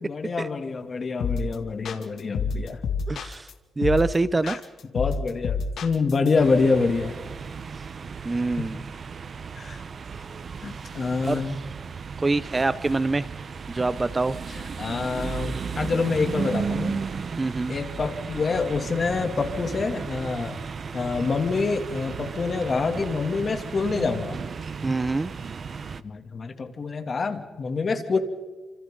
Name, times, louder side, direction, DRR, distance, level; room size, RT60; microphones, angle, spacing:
voice 1, 0.0-2.8 4.4-4.6 4.9-7.2 8.6-8.7 9.6-9.8 10.6-11.6 14.5-17.0 17.7-20.6 20.9-24.4 26.0-28.2, left 4 dB, 40° left, 5 dB, 2.7 m, -26 dB
sound 1, 1.2-1.5 1.8-3.5 3.8-4.2 4.5-6.3, left 5 dB, 75° left, 2.3 m, -28 dB
voice 2, 3.1-3.5 3.8-4.6 8.2-8.8 11.3-11.4 12.2-13.3 13.7-14.4 17.4-17.7 24.8-25.3, right 3 dB, 20° right, 15 dB, 0.6 m, -24 dB
sound 2, 6.4-26.0, right 5 dB, 45° right, 0.9 m, -35 dB
30.0 x 27.0 x 3.9 m, 1.3 s
cardioid pair, 110°, 0 cm